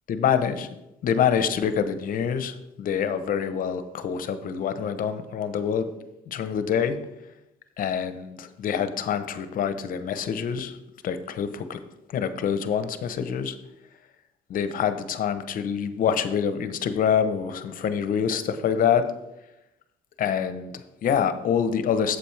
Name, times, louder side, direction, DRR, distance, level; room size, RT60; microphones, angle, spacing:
voice 1, 0.1-0.8 1.0-5.9 6.3-7.1 7.8-10.8 11.0-11.8 12.1-13.6 14.5-19.1 20.2-22.2, left 7 dB, 55° left, 10 dB, 0.8 m, -26 dB
8.6 x 7.6 x 3.3 m, 0.92 s
cardioid pair, 110°, 17 cm